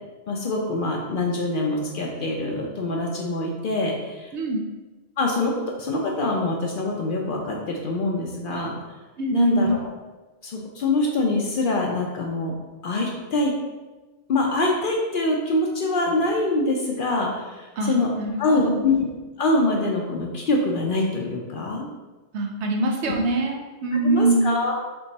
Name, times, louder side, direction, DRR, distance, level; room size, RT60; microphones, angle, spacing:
voice 1, 0.3-4.3 5.2-8.7 9.3-9.9 10.4-12.5 12.8-13.5 14.3-18.1 18.4-19.1 19.4-21.9 23.1-23.2 23.9-24.7, left 2 dB, 60° left, 0 dB, 0.6 m, -24 dB
voice 2, 4.3-4.6 9.2-9.7 17.8-18.9 22.3-24.6, right 2 dB, 75° right, 2 dB, 0.9 m, -23 dB
3.4 x 3.0 x 4.0 m, 1.2 s
omnidirectional pair, 1.2 m